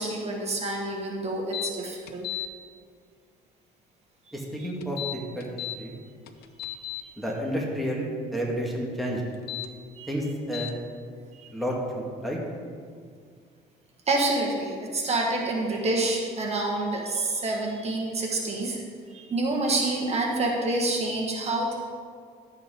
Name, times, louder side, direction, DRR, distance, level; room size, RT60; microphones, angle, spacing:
voice 1, 0.0-2.3 4.3-4.7 10.0-10.1 14.1-18.8 19.1-21.8, right 2 dB, 40° right, -1 dB, 1.6 m, -28 dB
sound 1, 1.5-1.7 2.1-2.5 4.8-5.8 6.3-7.0 9.3-9.7 10.5-10.7, left 13 dB, 70° left, 0.7 m, -34 dB
voice 2, 4.3-6.0 7.2-9.2 10.1-10.7 11.5-12.4, equal, ahead, -3 dB, 1.8 m, -31 dB
12.0 x 8.2 x 3.8 m, 2.1 s
cardioid pair, 110°, 17 cm